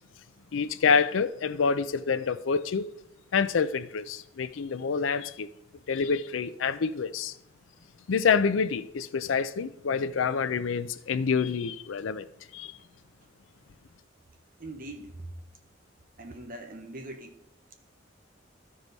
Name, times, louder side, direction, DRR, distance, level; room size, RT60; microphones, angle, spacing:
voice 1, 0.5-2.9 3.3-5.5 5.9-7.3 8.1-12.3 12.5-12.7, left 5 dB, 85° left, 0.5 m, -27 dB
voice 2, 14.6-15.3 16.2-17.4, right 1 dB, 45° right, 1.1 m, -41 dB
13.0 x 4.8 x 4.0 m
head